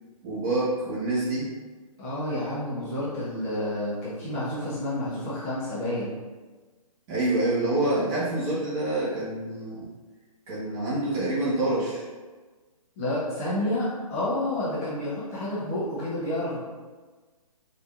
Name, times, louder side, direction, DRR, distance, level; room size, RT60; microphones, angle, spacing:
voice 1, 0.2-1.5 7.1-9.8 10.5-12.0, right 2 dB, 20° right, -9 dB, 1.4 m, -26 dB
voice 2, 2.0-6.1 13.0-16.6, left 1 dB, 20° left, -9 dB, 1.1 m, -29 dB
5.0 x 3.5 x 2.6 m, 1.3 s
hypercardioid pair, 160°, 19 cm